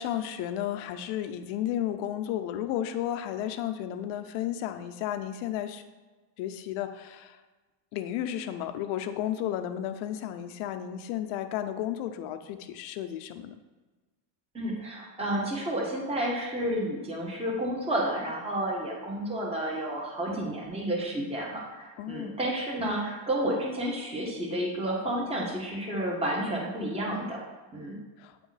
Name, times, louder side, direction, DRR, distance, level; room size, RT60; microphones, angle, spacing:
voice 1, 0.0-5.8 6.4-7.4 7.9-13.5 22.0-22.4 28.2-28.3, left 11 dB, 75° left, 8 dB, 0.7 m, -33 dB
voice 2, 14.5-27.4 27.7-28.0, right 1 dB, 10° right, -3 dB, 1.1 m, -31 dB
8.4 x 3.0 x 4.0 m, 1.3 s
cardioid pair, 120°, 49 cm